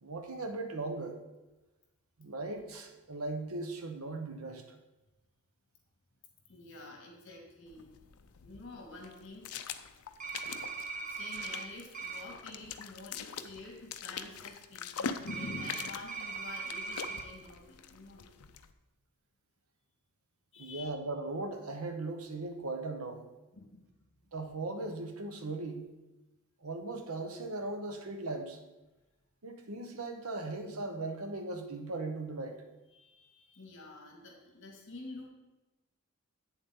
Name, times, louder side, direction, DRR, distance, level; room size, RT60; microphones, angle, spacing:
voice 1, 0.0-1.2 2.2-4.6 20.6-23.2 24.3-25.9 26.6-28.6 29.4-32.6, right 2 dB, 80° right, 5 dB, 1.1 m, -38 dB
voice 2, 6.5-9.5 10.6-10.8 11.1-18.3 20.5-21.0 23.5-24.2 32.9-35.3, left 2 dB, 60° left, 1 dB, 2.2 m, -48 dB
sound 1, 7.7-18.7, left 6 dB, 85° left, 0.5 m, -44 dB
sound 2, 10.2-11.6 11.9-12.2 15.3-17.2, right 4 dB, 40° right, 1.0 m, -39 dB
8.6 x 7.2 x 3.8 m, 1.1 s
head